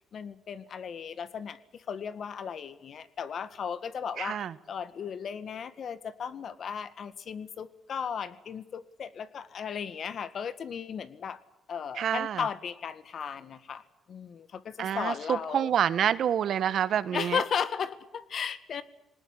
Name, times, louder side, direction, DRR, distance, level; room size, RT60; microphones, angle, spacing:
voice 1, 0.1-11.4 11.7-15.7 17.1-18.8, left 7 dB, 55° left, 14 dB, 1.9 m, -35 dB
voice 2, 4.2-4.5 12.0-12.4 14.8-17.4, right 9 dB, 65° right, 16 dB, 1.3 m, -27 dB
21.0 x 19.5 x 9.8 m, 0.91 s
cardioid pair, 90°, 0 cm